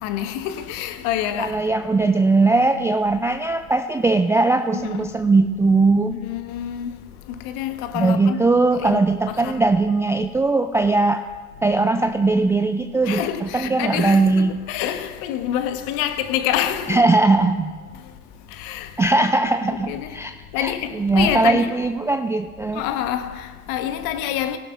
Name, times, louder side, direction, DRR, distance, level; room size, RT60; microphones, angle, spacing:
voice 1, 0.0-1.6 4.7-5.1 6.1-7.0 7.4-9.0 9.3-9.6 13.0-17.0 17.9-18.0 18.5-19.0 19.7-20.2 20.5-21.7 22.7-24.6, left 11 dB, 50° left, 1.2 m, -27 dB
voice 2, 1.4-6.1 7.9-11.2 11.6-14.6 16.9-17.7 19.0-20.3 20.6-22.8, right 3 dB, 5° right, 0.3 m, -19 dB
21.0 x 11.5 x 2.4 m
figure-of-eight pair, 70°, 44 cm